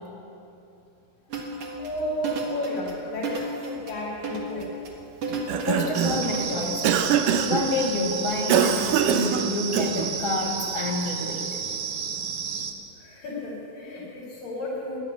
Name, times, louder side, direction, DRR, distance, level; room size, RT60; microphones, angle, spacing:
sound 1, 1.3-6.9, right 2 dB, 50° right, 2.1 m, -33 dB
voice 1, 1.8-4.7 12.9-15.0, left 1 dB, 85° left, -5 dB, 4.9 m, -33 dB
Cough, 5.3-6.3 6.8-7.7 8.5-10.2, right 8 dB, 85° right, 2.4 m, -23 dB
voice 2, 5.6-11.5, left 2 dB, 10° left, -3 dB, 1.6 m, -28 dB
sound 2, 5.9-12.7, right 6 dB, 70° right, 1.2 m, -32 dB
13.5 x 11.5 x 9.2 m, 2.8 s
omnidirectional pair, 3.9 m